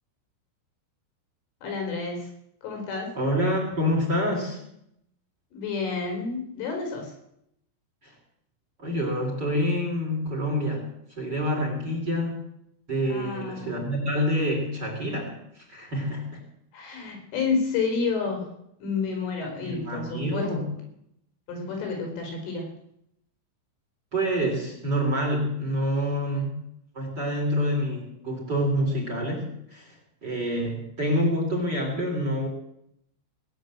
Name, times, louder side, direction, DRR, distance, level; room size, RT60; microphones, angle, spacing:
voice 1, 1.6-2.3 2.6-3.1 5.5-7.1 13.1-13.8 16.7-18.5 18.8-20.5 21.5-22.7, left 4 dB, 90° left, 2 dB, 6.9 m, -30 dB
voice 2, 3.1-4.6 8.0-8.1 8.8-10.8 11.2-12.3 12.9-16.4 19.6-20.6 24.1-26.6 26.9-29.9 30.2-32.5, equal, 25° right, 1 dB, 3.4 m, -27 dB
18.5 x 9.7 x 7.6 m, 0.76 s
omnidirectional pair, 5.5 m